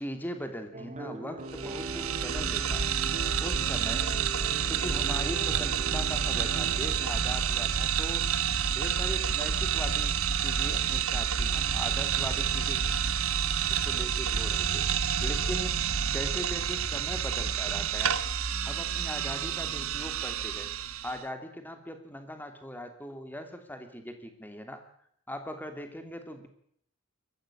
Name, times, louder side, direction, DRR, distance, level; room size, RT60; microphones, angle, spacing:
voice 1, 0.0-2.9 3.4-4.1 4.7-8.3 8.6-12.8 13.7-14.8 15.2-15.7 16.1-18.2 18.6-20.7 21.0-24.8 25.3-26.5, equal, 10° left, 7 dB, 2.9 m, -40 dB
sound 1, 0.7-7.1, right 2 dB, 35° right, 1.5 m, -40 dB
sound 2, 1.5-21.2, right 7 dB, 70° right, 1.3 m, -29 dB
22.5 x 15.0 x 8.8 m, 0.67 s
head